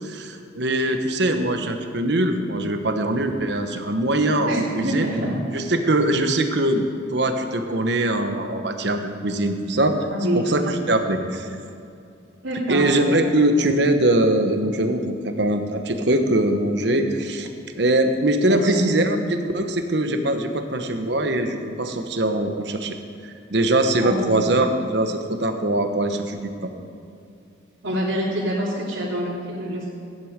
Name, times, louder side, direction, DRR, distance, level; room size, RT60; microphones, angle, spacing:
voice 1, 0.0-5.1 5.5-6.8 7.1-10.1 10.3-11.6 12.7-17.5 17.7-23.0 23.2-26.5, right 1 dB, 60° right, 6 dB, 1.1 m, -22 dB
voice 2, 4.4-5.4 10.1-10.4 12.4-12.9 18.4-18.7 24.0-24.3 27.8-29.9, equal, 80° right, -9 dB, 3.3 m, -26 dB
15.5 x 10.5 x 5.1 m, 2.5 s
head